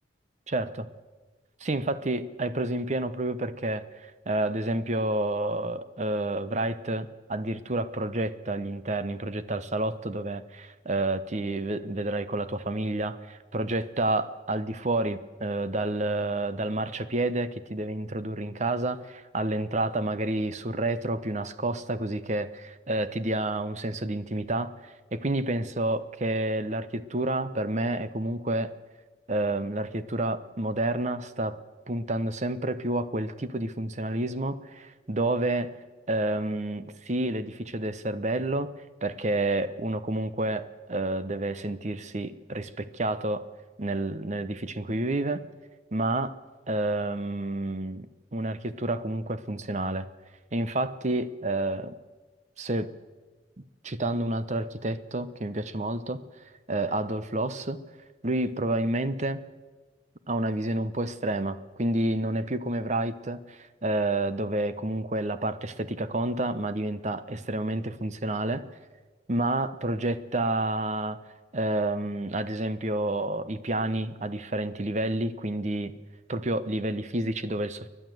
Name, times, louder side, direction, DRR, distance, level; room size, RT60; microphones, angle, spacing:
voice 1, 0.5-0.8 1.6-3.8 4.3-24.7 25.1-28.7 29.3-31.6 31.9-35.7 36.1-38.7 39.0-43.4 43.8-45.4 45.9-46.3 46.7-50.1 50.5-51.9 52.6-52.9 53.8-56.2 56.7-57.8 58.2-59.4 60.3-68.6 69.3-71.2 71.5-76.0 76.3-77.9, right 1 dB, 40° right, 13 dB, 0.9 m, -29 dB
30.0 x 11.5 x 7.8 m, 1.3 s
head